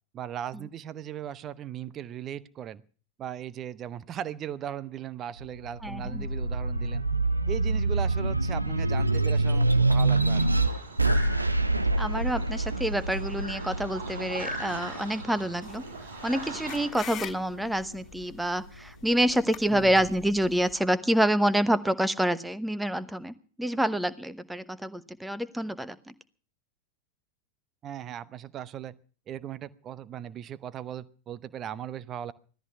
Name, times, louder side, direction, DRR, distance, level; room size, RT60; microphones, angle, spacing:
voice 1, 0.1-2.8 3.2-7.0 7.5-10.4 19.7-20.1 27.8-28.9 29.3-32.3, right 10 dB, 30° right, 17 dB, 0.8 m, -38 dB
sound 1, 5.4-16.2 16.7-17.9, right 2 dB, 85° right, 1.0 m, -26 dB
voice 2, 5.8-6.3 12.0-15.8 16.2-26.1, right 1 dB, 5° right, 14 dB, 1.0 m, -27 dB
sound 2, 10.3-16.9, right 1 dB, 60° right, 6.1 m, -41 dB
sound 3, 15.6-20.7, left 9 dB, 25° left, 2.6 m, -44 dB
17.5 x 13.5 x 5.8 m, 0.41 s
figure-of-eight pair, 90°, 0 cm